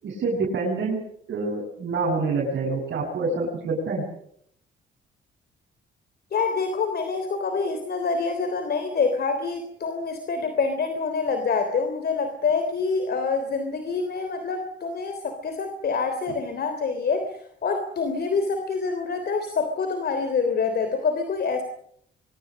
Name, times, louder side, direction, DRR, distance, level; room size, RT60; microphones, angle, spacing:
voice 1, 0.0-4.1, right 3 dB, 60° right, -4 dB, 7.5 m, -27 dB
voice 2, 6.3-21.6, left 4 dB, 55° left, 8 dB, 3.4 m, -26 dB
24.0 x 24.0 x 6.6 m, 0.69 s
cardioid pair, 90°, 20 cm